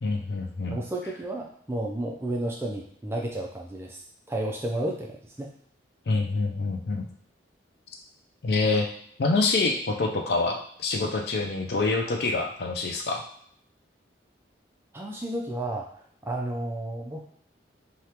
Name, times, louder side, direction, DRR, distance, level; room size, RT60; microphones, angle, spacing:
voice 1, 0.0-0.8 6.1-7.1 8.4-8.9 9.2-13.2, left 3 dB, 55° left, 2 dB, 0.4 m, -26 dB
voice 2, 0.7-4.0 4.3-5.5 14.9-15.9 16.2-17.2, right 1 dB, 15° right, -1 dB, 0.4 m, -32 dB
3.3 x 2.4 x 2.8 m, 0.63 s
head